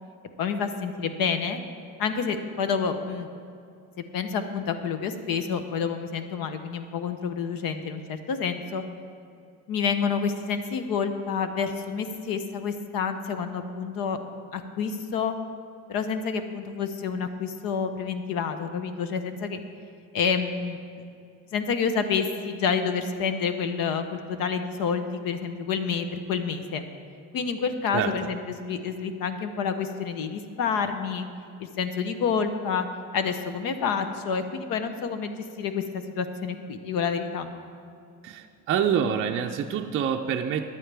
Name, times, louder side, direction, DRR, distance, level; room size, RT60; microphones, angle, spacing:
voice 1, 0.4-1.6 2.0-3.3 4.1-8.8 9.7-14.2 14.5-15.4 15.9-19.6 20.1-20.8 21.5-26.8 27.3-31.3 31.6-32.9 33.1-35.3 35.6-37.5, left 6 dB, 60° left, 8 dB, 0.8 m, -28 dB
voice 2, 38.2-40.7, right 8 dB, 35° right, 2 dB, 0.5 m, -26 dB
14.0 x 10.5 x 3.4 m, 2.4 s
cardioid pair, 120°, 38 cm